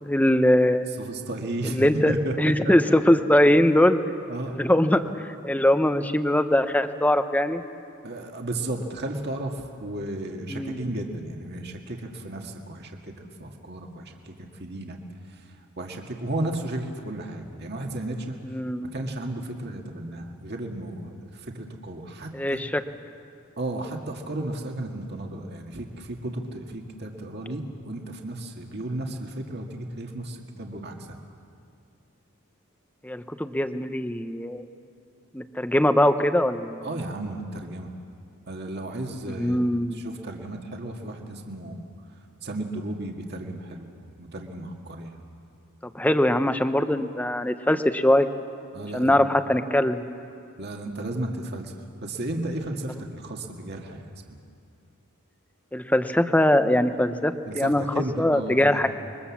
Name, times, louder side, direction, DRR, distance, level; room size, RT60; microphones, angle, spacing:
voice 1, 0.0-0.9 1.7-4.0 4.5-7.6 10.5-10.8 18.4-18.9 22.3-22.8 33.0-34.6 35.3-36.9 39.4-39.9 45.9-48.3 48.9-50.0 55.7-57.8 58.2-58.9, left 1 dB, 5° left, 9 dB, 0.8 m, -22 dB
voice 2, 1.0-2.7 4.3-4.5 8.0-15.0 15.3-18.4 18.8-22.6 23.6-31.2 36.8-37.9 38.5-39.6 39.9-41.8 42.4-45.2 48.7-49.2 50.6-51.7 52.0-54.4 57.5-58.9, right 1 dB, 50° right, 2 dB, 2.0 m, -34 dB
27.0 x 22.5 x 7.3 m, 2.4 s
head